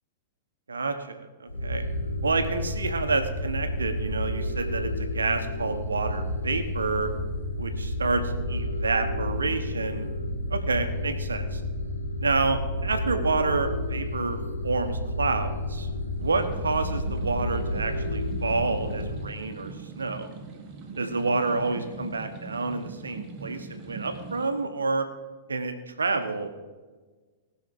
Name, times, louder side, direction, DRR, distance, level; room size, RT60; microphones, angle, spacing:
voice 1, 0.7-1.8 2.2-7.1 7.6-10.1 10.5-11.6 12.2-15.9 16.2-20.3 21.0-25.1 25.5-26.5, right 3 dB, 75° right, 7 dB, 1.2 m, -29 dB
sound 1, 1.5-19.2, left 1 dB, 80° left, 2.1 m, -31 dB
sound 2, 16.1-24.5, right 4 dB, 35° right, 1.8 m, -41 dB
19.0 x 6.4 x 4.8 m, 1.4 s
figure-of-eight pair, 100°, 0 cm